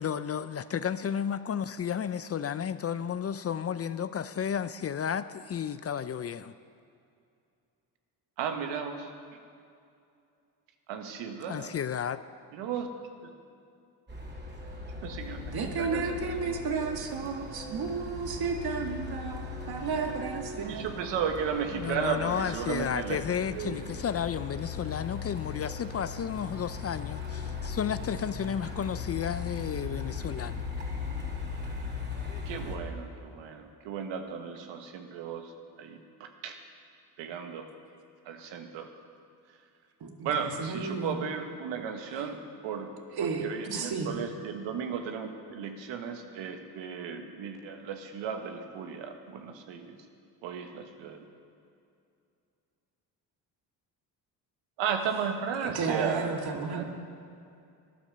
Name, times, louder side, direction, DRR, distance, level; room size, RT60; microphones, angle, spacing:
voice 1, 0.0-6.5 11.5-12.2 21.7-30.6 43.7-43.9, left 8 dB, 35° left, 13 dB, 0.5 m, -32 dB
voice 2, 8.4-9.1 10.9-11.8 12.5-12.9 13.2-13.3 15.0-15.5 15.8-16.3 20.7-23.2 23.5-23.9 32.4-35.5 35.8-36.6 37.2-37.7 38.2-38.9 40.2-42.4 42.6-42.9 43.4-50.0 50.4-51.3 54.8-56.4 56.7-56.8, right 7 dB, 85° right, 5 dB, 1.4 m, -35 dB
Truck, 14.1-32.8, left 4 dB, 25° right, 2.7 m, -38 dB
voice 3, 15.5-21.1 40.0-41.2 42.1-42.2 43.1-44.2 55.6-56.8, right 5 dB, 60° right, 3 dB, 1.9 m, -33 dB
13.0 x 10.5 x 6.7 m, 2.5 s
supercardioid pair, 75°, 43 cm